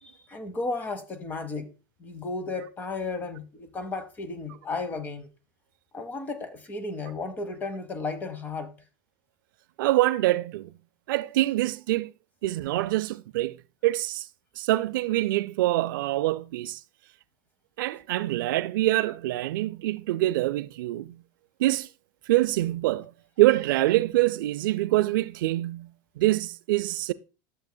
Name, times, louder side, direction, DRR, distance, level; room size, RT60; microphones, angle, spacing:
voice 1, 0.0-1.7 2.0-5.3 5.9-8.7, left 3 dB, 15° left, 0.8 m, -34 dB
voice 2, 9.8-10.7 11.1-12.1 12.4-13.6 13.8-14.3 14.6-16.8 17.8-21.2 21.6-21.9 22.3-23.1 23.4-25.9 26.2-27.1, right 17 dB, 75° right, 0.4 m, -25 dB
12.5 x 7.2 x 2.2 m
supercardioid pair, 165°, 11 cm